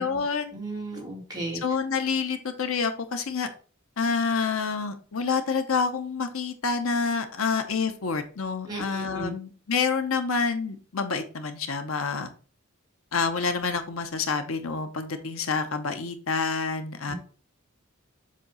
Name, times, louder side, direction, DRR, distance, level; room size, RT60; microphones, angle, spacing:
voice 1, 0.0-0.6 1.6-3.5 4.0-12.3 13.1-17.1, left 5 dB, 75° left, 8 dB, 0.8 m, -28 dB
voice 2, 0.5-1.6 8.7-9.3 17.1-17.2, right 2 dB, 20° right, -1 dB, 1.9 m, -35 dB
7.5 x 2.8 x 5.5 m, 0.39 s
head